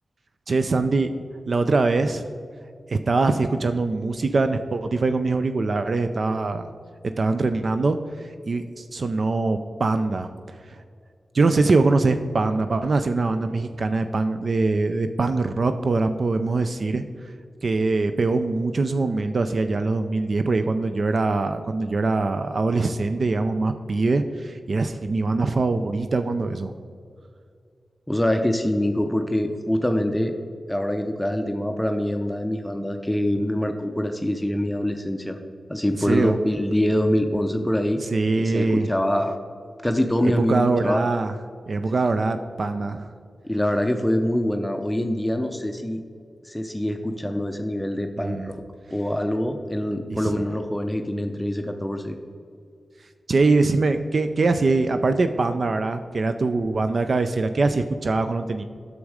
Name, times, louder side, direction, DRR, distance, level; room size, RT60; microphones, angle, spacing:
voice 1, 0.5-1.1 1.5-2.3 2.9-6.7 7.2-10.8 11.3-17.1 17.6-26.7 36.1-36.3 38.1-38.9 40.2-41.3 41.7-43.1 48.2-48.5 50.1-50.5 53.3-58.6, right 3 dB, 55° right, 8 dB, 0.4 m, -23 dB
voice 2, 28.1-30.4 30.7-35.4 35.7-38.0 38.3-39.4 39.8-41.1 43.4-46.0 46.4-48.6 48.9-52.2, left 1 dB, 5° left, 5 dB, 0.5 m, -24 dB
8.3 x 6.3 x 4.8 m, 2.3 s
wide cardioid pair, 80°, 0 cm